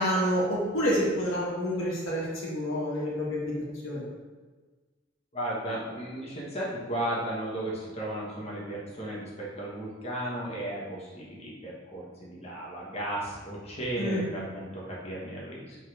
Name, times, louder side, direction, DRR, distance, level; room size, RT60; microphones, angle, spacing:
voice 1, 0.0-3.5 3.8-4.0 14.0-14.2, equal, 85° left, -5 dB, 1.8 m, -28 dB
voice 2, 5.3-15.8, right 1 dB, 30° left, -5 dB, 1.3 m, -35 dB
5.4 x 4.1 x 4.9 m, 1.4 s
head